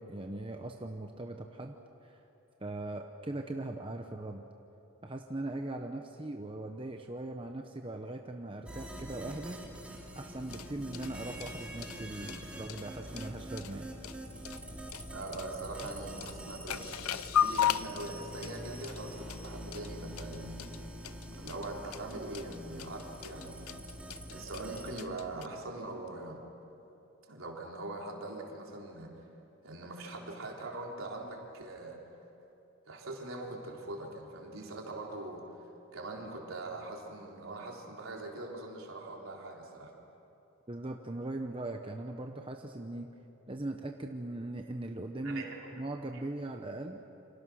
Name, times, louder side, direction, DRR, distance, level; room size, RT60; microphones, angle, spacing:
voice 1, 0.0-1.8 2.0-2.2 2.6-4.4 5.0-9.6 10.1-13.9 40.7-43.1 43.5-45.4 45.8-47.0, right 2 dB, 25° right, 4 dB, 0.9 m, -40 dB
sound 1, 8.7-25.0, right 1 dB, 5° right, 2.7 m, -45 dB
sound 2, 10.3-25.5, left 9 dB, 90° left, 0.6 m, -37 dB
voice 2, 15.1-16.9 17.4-20.9 21.3-23.7 24.3-26.4 27.3-29.1 29.6-32.0 32.9-35.6 35.9-39.9 45.2-45.7, right 2 dB, 70° right, -1 dB, 3.9 m, -42 dB
28.5 x 26.0 x 6.4 m, 2.9 s
head